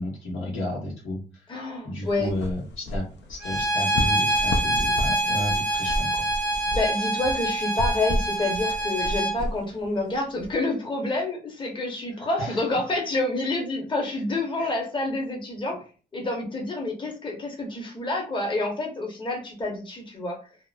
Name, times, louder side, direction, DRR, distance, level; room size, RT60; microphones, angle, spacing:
voice 1, 0.0-1.4 1.8-6.3 12.4-12.6 14.0-14.2 14.6-14.7, left 1 dB, 85° left, -2 dB, 1.2 m, -32 dB
voice 2, 1.5-2.3 6.7-15.8 16.1-20.4, left 2 dB, 25° left, 0 dB, 0.9 m, -28 dB
sound 1, 2.1-10.5, left 1 dB, 60° left, 0.5 m, -32 dB
Bowed string instrument, 3.4-9.3, right 1 dB, 40° left, 1.1 m, -26 dB
2.8 x 2.0 x 2.4 m, 0.35 s
cardioid pair, 90°, 20 cm